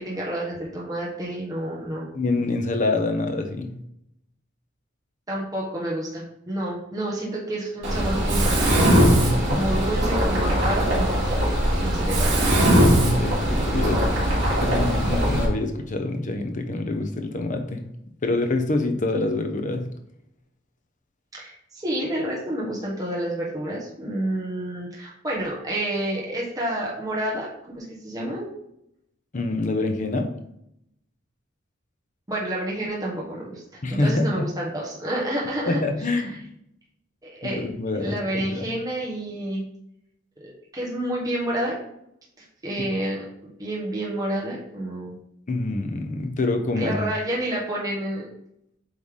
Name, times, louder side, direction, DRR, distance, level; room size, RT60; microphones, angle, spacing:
voice 1, 0.0-2.1 5.3-11.4 11.8-12.4 21.3-27.5 27.7-28.5 32.3-35.8 36.1-36.3 37.2-37.6 38.0-39.6 40.4-41.8 42.6-45.2 46.7-48.3, right 1 dB, 20° right, -5 dB, 1.3 m, -29 dB
voice 2, 2.1-3.7 9.5-9.6 13.0-14.2 14.6-17.8 18.2-19.9 29.3-30.3 33.8-34.5 35.7-36.3 37.4-38.6 42.8-42.9 45.5-47.1, left 2 dB, 40° left, 6 dB, 0.7 m, -26 dB
Mechanisms, 7.8-15.4, right 1 dB, 65° right, 2.4 m, -20 dB
8.1 x 3.3 x 3.7 m, 0.77 s
head